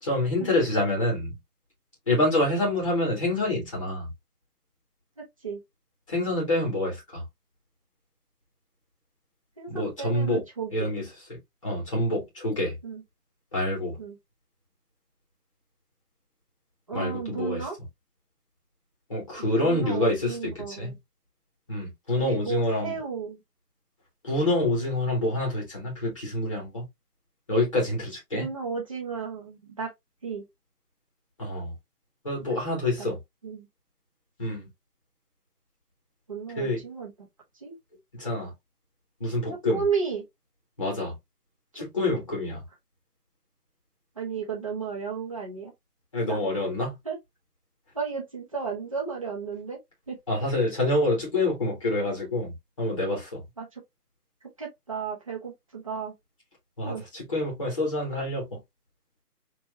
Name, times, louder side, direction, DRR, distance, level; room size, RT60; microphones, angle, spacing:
voice 1, 0.0-1.3 2.1-4.1 6.1-7.2 9.7-10.4 10.7-11.1 11.6-12.8 13.5-14.0 16.9-17.6 19.1-20.9 21.7-23.0 24.2-26.8 27.5-28.5 31.4-31.7 32.2-33.2 34.4-34.7 36.6-36.8 38.1-38.5 39.2-39.8 40.8-41.1 41.7-42.6 46.1-47.0 50.3-53.4 56.8-58.6, left 1 dB, 20° left, 1.5 m, -27 dB
voice 2, 5.2-5.6 9.6-10.9 12.8-13.0 14.0-14.2 16.9-17.8 19.4-20.9 22.2-23.4 28.3-29.9 30.2-30.4 33.0-33.1 33.4-33.7 36.3-37.3 37.6-37.8 39.7-40.2 41.7-41.8 44.1-45.7 46.3-46.4 47.0-47.2 47.9-49.8 50.1-50.2 53.1-53.2 53.6-53.8 54.6-56.1 56.8-57.0, right 6 dB, 20° right, 1.2 m, -33 dB
4.5 x 2.9 x 2.8 m
figure-of-eight pair, 170°, 47 cm